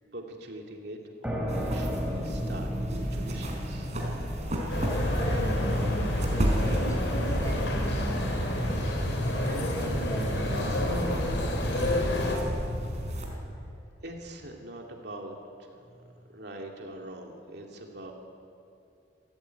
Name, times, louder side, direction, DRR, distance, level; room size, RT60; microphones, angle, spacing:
voice 1, 0.1-3.9 14.0-15.9 16.3-18.1, right 1 dB, 65° right, 1 dB, 2.6 m, -43 dB
sound 1, 1.2-8.6, equal, 5° right, 3.4 m, -36 dB
sound 2, 1.5-13.3, equal, 40° right, 4.5 m, -32 dB
sound 3, 4.7-12.4, left 1 dB, 90° left, 4.7 m, -29 dB
voice 2, 5.1-6.1 6.6-8.8 9.2-11.3 15.9-16.1, right 1 dB, 20° left, -1 dB, 5.5 m, -38 dB
26.5 x 14.5 x 9.0 m, 2.5 s
head